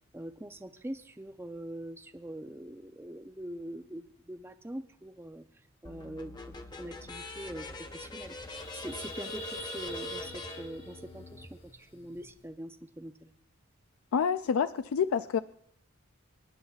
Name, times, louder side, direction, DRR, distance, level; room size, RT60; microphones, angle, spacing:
voice 1, 0.1-5.5 5.8-8.4 8.7-13.3, right 1 dB, 10° right, 9 dB, 0.5 m, -43 dB
sound 1, 5.8-11.5, left 3 dB, 20° left, 0.7 m, -44 dB
sound 2, 7.1-7.2 7.5-7.7 8.1-12.4, equal, 45° left, 2.3 m, -43 dB
voice 2, 14.1-15.4, left 7 dB, 85° left, 12 dB, 0.3 m, -28 dB
26.5 x 10.0 x 2.4 m, 0.69 s
head